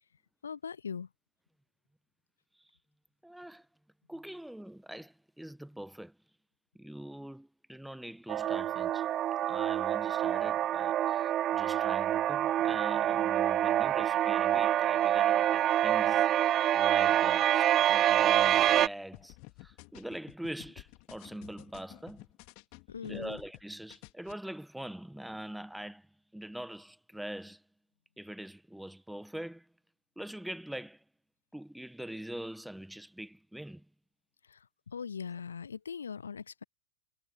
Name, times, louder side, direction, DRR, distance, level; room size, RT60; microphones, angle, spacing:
voice 1, 0.4-1.1 22.9-23.4 34.5-34.6 34.9-36.6, left 6 dB, 70° left, 1.3 m, -40 dB
voice 2, 3.2-3.7 4.1-6.2 6.7-9.1 9.4-22.3 23.0-27.6 28.2-29.7 30.2-31.0 31.5-33.9, right 1 dB, ahead, 1.2 m, -43 dB
sound 1, 8.3-18.9, right 12 dB, 30° right, 0.4 m, -26 dB
sound 2, 19.1-23.6 23.9-24.3, left 37 dB, 45° left, 2.7 m, -52 dB
figure-of-eight pair, 90°, 0 cm